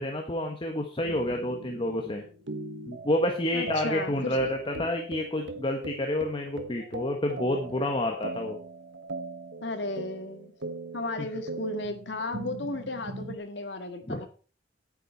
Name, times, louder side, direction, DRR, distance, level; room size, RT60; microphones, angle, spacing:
voice 1, 0.0-2.2 2.9-8.6 11.2-11.3 14.1-14.2, left 1 dB, 30° left, 3 dB, 1.3 m, -29 dB
sound 1, 1.0-13.4, right 3 dB, 75° right, 1.3 m, -40 dB
voice 2, 3.5-4.4 9.6-10.5 10.9-14.3, left 2 dB, 65° left, 6 dB, 1.8 m, -34 dB
10.0 x 9.1 x 4.6 m, 0.38 s
head